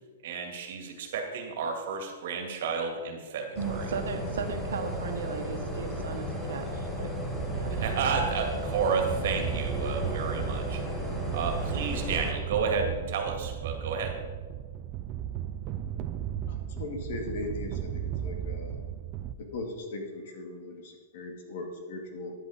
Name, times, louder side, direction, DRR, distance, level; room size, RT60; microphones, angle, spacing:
voice 1, 0.2-3.9 7.7-10.8 11.3-14.2, right 5 dB, 55° right, 3 dB, 2.2 m, -31 dB
sound 1, 3.6-12.3, equal, 5° left, 1.4 m, -34 dB
voice 2, 3.6-7.1 7.5-7.7, right 6 dB, 85° right, 5 dB, 1.4 m, -36 dB
sound 2, 7.3-19.3, right 10 dB, 30° right, 0.5 m, -35 dB
voice 3, 16.5-17.9 18.2-18.8 19.5-22.3, left 2 dB, 55° left, 2 dB, 2.2 m, -38 dB
10.0 x 7.8 x 5.0 m, 1.5 s
hypercardioid pair, 160°, 0 cm